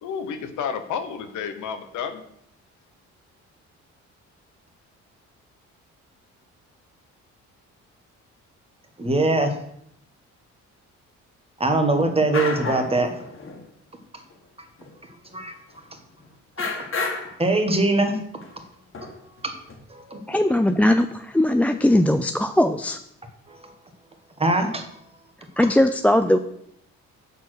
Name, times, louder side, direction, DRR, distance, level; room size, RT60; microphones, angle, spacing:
voice 1, 0.0-2.2, left 7 dB, 80° left, 1.1 m, -31 dB
voice 2, 9.0-9.5 11.6-13.1 15.3-15.5 17.4-18.1 19.0-19.1 19.4-19.5 19.9-20.4 23.5-23.7 24.4-24.8, right 2 dB, 20° right, 1.5 m, -22 dB
sound 1, 11.9-12.0 12.3-12.9 13.2-13.6 14.3-14.4 14.8-14.9 16.1-16.3 16.6-17.4 18.4-18.5 18.9-19.7, left 4 dB, 45° left, 1.9 m, -30 dB
voice 3, 20.3-23.0 25.6-26.4, left 1 dB, 5° left, 0.3 m, -19 dB
7.0 x 4.5 x 6.3 m
cardioid pair, 90°, 30 cm